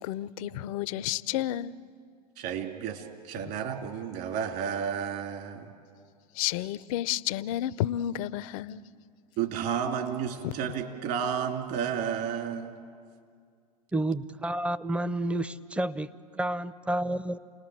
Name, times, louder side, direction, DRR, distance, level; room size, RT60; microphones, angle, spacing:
voice 1, 0.0-1.7 3.4-3.5 6.3-8.8 10.4-10.5, left 13 dB, 55° left, 0.7 m, -31 dB
voice 2, 2.4-5.7 9.4-12.7, right 8 dB, 50° right, 2.7 m, -32 dB
voice 3, 13.9-17.4, right 1 dB, 5° right, 0.7 m, -30 dB
30.0 x 20.0 x 7.6 m
hypercardioid pair, 95°, 21 cm